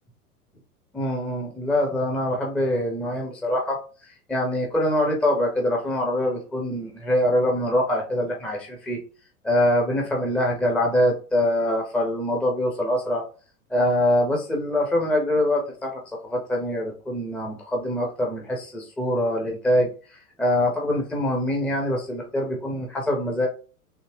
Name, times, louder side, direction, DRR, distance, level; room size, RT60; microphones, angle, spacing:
voice 1, 0.9-9.0 9.4-13.2 13.7-23.5, left 1 dB, 5° left, 0 dB, 0.5 m, -24 dB
3.5 x 2.7 x 2.8 m, 0.37 s
figure-of-eight pair, 90°, 44 cm